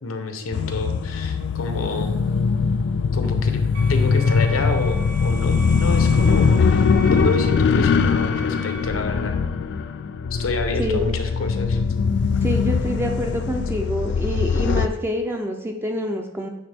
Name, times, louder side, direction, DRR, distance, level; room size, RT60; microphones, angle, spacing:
voice 1, 0.0-2.1 3.1-3.6 3.9-9.4 10.3-11.8, left 3 dB, 80° left, 6 dB, 0.8 m, -28 dB
sound 1, 0.5-14.9, left 5 dB, 55° left, 0.3 m, -21 dB
sound 2, 3.7-8.8, right 2 dB, 40° right, 0.7 m, -39 dB
voice 2, 10.8-11.1 12.4-16.5, equal, 10° right, 3 dB, 0.4 m, -26 dB
8.6 x 3.6 x 3.4 m, 0.95 s
head